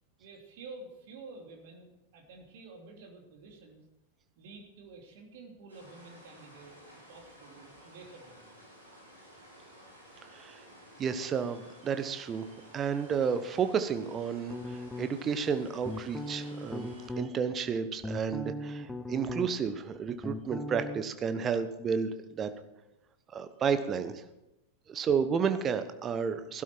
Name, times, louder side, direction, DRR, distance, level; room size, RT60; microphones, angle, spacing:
voice 1, 0.2-3.8 4.4-8.5, right 3 dB, 55° right, 2 dB, 2.9 m, -50 dB
sound 1, 5.7-17.1, equal, 80° right, 5.3 m, -54 dB
voice 2, 11.0-12.4 12.7-16.9 17.2-22.5 23.3-24.2 24.9-26.6, right 6 dB, 25° right, 10 dB, 1.1 m, -31 dB
sound 2, 14.5-15.3 15.8-17.3 17.8-19.7 19.9-21.0, left 1 dB, 10° left, 1.0 m, -38 dB
16.0 x 12.0 x 4.6 m, 0.93 s
figure-of-eight pair, 90°, 0 cm